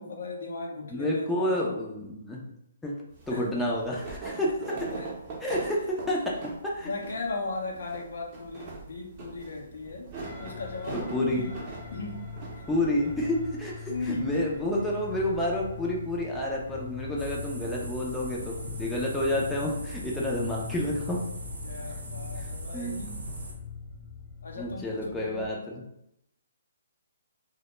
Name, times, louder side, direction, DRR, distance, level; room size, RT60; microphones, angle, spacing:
voice 1, 0.0-1.8 3.3-3.6 4.3-4.5 4.8-5.1 6.8-10.1 10.4-11.6 11.9-12.2 13.9-14.4 21.6-23.2 24.4-25.4, left 3 dB, 75° left, 1 dB, 0.5 m, -37 dB
voice 2, 0.9-2.4 2.8-3.0 3.3-4.9 5.4-6.4 6.6-6.9 10.9-11.4 12.7-21.2 22.4-23.0 24.5-25.8, left 1 dB, 5° left, -4 dB, 0.4 m, -29 dB
sound 1, 3.1-21.0, right 3 dB, 35° right, 0.6 m, -44 dB
sound 2, 10.2-25.5, left 4 dB, 40° left, 0.7 m, -42 dB
sound 3, 17.2-23.5, equal, 80° right, 0.6 m, -39 dB
2.1 x 2.0 x 3.0 m, 0.81 s
hypercardioid pair, 150°, 0 cm